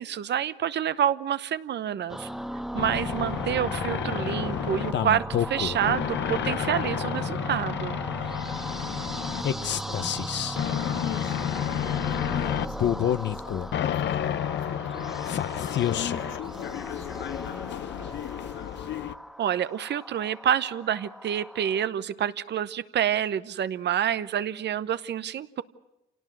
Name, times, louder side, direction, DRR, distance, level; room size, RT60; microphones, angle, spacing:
voice 1, 0.0-2.3 2.7-8.0 19.4-25.6, right 10 dB, 60° right, 14 dB, 0.9 m, -28 dB
sound 1, 2.1-21.9, right 1 dB, ahead, 1.3 m, -37 dB
sound 2, 2.8-19.1, left 10 dB, 65° left, 0.8 m, -30 dB
voice 2, 8.7-10.5 10.8-13.4 13.8-15.4 15.9-18.3, left 7 dB, 80° left, 3 dB, 3.0 m, -42 dB
27.0 x 18.5 x 7.8 m, 0.95 s
cardioid pair, 90°, 20 cm